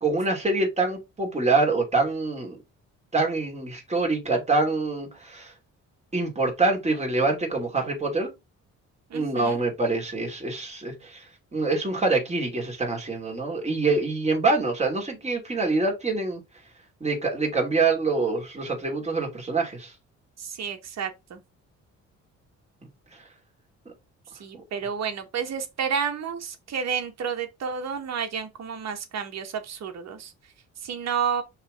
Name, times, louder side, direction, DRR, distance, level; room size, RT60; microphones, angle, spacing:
voice 1, 0.0-2.6 3.1-5.5 6.1-8.3 9.1-11.2 11.5-16.4 17.0-19.9 24.5-24.6, right 3 dB, 20° right, 3.1 m, -25 dB
voice 2, 9.1-9.6 20.4-21.4 24.3-30.3 30.8-31.4, right 7 dB, 60° right, 1.7 m, -30 dB
5.5 x 3.5 x 4.9 m
cardioid pair, 90°, 30 cm